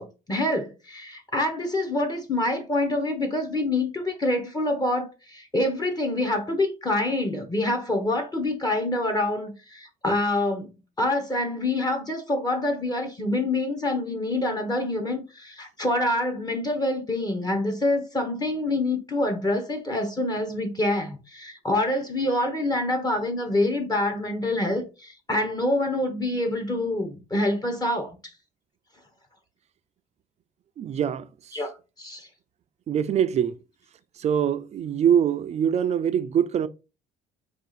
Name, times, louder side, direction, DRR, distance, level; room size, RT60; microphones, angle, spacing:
voice 1, 0.0-10.7 11.0-28.2 31.5-31.7 32.0-32.3, left 1 dB, 25° left, 1.0 m, -26 dB
voice 2, 30.8-31.6 32.9-33.6 34.2-36.7, right 9 dB, 40° right, 0.4 m, -24 dB
4.6 x 2.5 x 4.0 m
cardioid pair, 110°, 17 cm